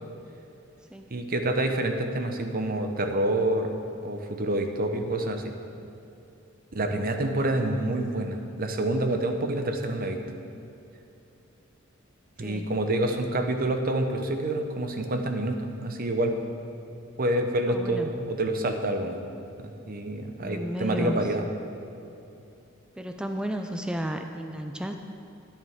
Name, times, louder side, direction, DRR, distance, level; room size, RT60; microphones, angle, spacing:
voice 1, 1.1-3.7 4.0-5.5 6.7-10.2 12.4-16.3 17.2-19.2 19.6-21.4, right 1 dB, 45° right, 5 dB, 0.9 m, -27 dB
voice 2, 12.4-12.7 17.7-18.1 20.4-21.3 23.0-24.9, equal, 5° right, 5 dB, 0.4 m, -33 dB
12.5 x 10.0 x 3.7 m, 2.8 s
head